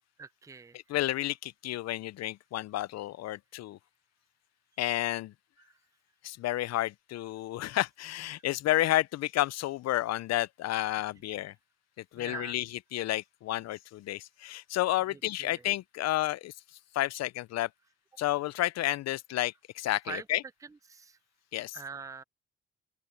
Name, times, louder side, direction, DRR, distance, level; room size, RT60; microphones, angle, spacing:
voice 1, 0.2-0.8 5.6-5.7 12.2-12.6 15.1-15.6 20.1-20.3 20.6-21.2 21.7-22.2, right 5 dB, 10° right, 0.5 m, -43 dB
voice 2, 0.7-3.8 4.8-5.3 6.2-11.5 12.1-16.5 16.9-17.7 18.2-20.4 21.5-21.8, left 15 dB, 60° left, 0.5 m, -31 dB
open air
cardioid pair, 90°, 30 cm